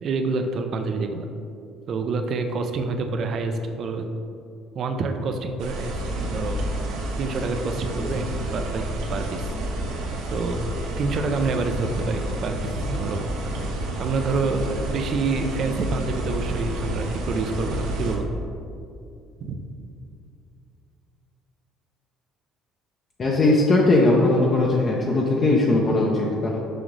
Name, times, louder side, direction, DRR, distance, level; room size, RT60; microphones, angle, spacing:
voice 1, 0.0-1.3 1.9-4.1 4.7-6.0 6.3-6.6 7.2-8.3 8.5-9.4 10.3-10.6 11.0-13.2 14.0-18.3 19.4-19.6, right 3 dB, 50° right, 6 dB, 0.5 m, -27 dB
sound 1, 5.6-18.2, right 1 dB, 85° right, 0.8 m, -29 dB
voice 2, 23.2-26.6, left 2 dB, 35° left, -3 dB, 0.7 m, -19 dB
6.1 x 5.0 x 3.2 m, 2.5 s
cardioid pair, 105°, 0 cm